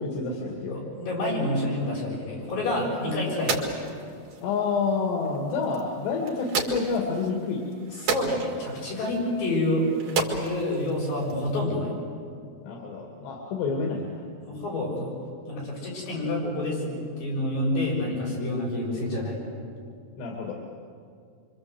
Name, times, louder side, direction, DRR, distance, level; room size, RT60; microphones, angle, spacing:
voice 1, 0.0-0.8 4.4-7.7 12.6-14.2 20.2-20.5, left 4 dB, 80° left, 1 dB, 4.4 m, -28 dB
voice 2, 0.7-3.6 8.0-9.9 10.3-11.9 14.4-15.1 15.5-19.4, left 1 dB, 55° left, -3 dB, 8.5 m, -28 dB
sound 1, 2.6-11.6, right 4 dB, 55° right, 3.8 m, -34 dB
26.5 x 25.5 x 7.9 m, 2.3 s
omnidirectional pair, 4.9 m